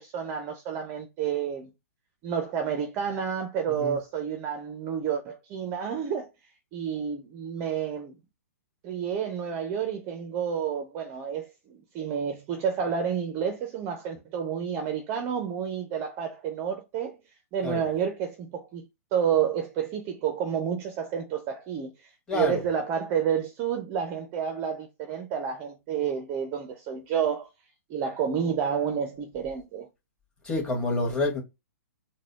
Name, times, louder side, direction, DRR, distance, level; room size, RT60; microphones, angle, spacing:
voice 1, 0.0-1.7 2.2-6.3 6.7-8.1 8.8-17.2 17.5-18.8 19.1-21.9 22.3-27.5 27.9-29.9, right 7 dB, 25° right, 0.6 m, -30 dB
voice 2, 22.3-22.6 30.4-31.4, left 2 dB, 10° left, 1.6 m, -27 dB
3.9 x 2.2 x 3.0 m
figure-of-eight pair, 115°, 9 cm